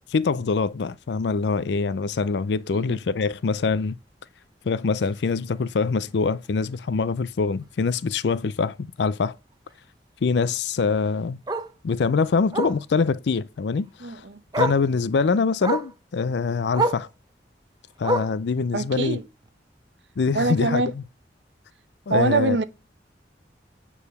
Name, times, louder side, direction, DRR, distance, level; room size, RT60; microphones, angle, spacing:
voice 1, 0.1-4.0 4.7-9.4 10.2-11.4 11.8-14.2 14.6-17.1 18.0-19.2 20.2-21.0 22.1-22.6, left 4 dB, 70° left, 0.4 m, -24 dB
Bark, 5.0-5.2 5.6-5.7 6.1-6.2 6.4-6.5 8.0-8.1 10.6-10.7 11.5-11.7 12.5-12.8 14.0-14.1 14.5-14.9 15.6-15.9 16.7-17.1 18.0-18.5 19.4-19.5, right 2 dB, 20° right, 0.7 m, -26 dB
voice 2, 14.0-14.4 18.7-19.2 20.3-20.9 22.1-22.6, right 3 dB, 80° right, 1.0 m, -24 dB
8.6 x 4.7 x 6.8 m
head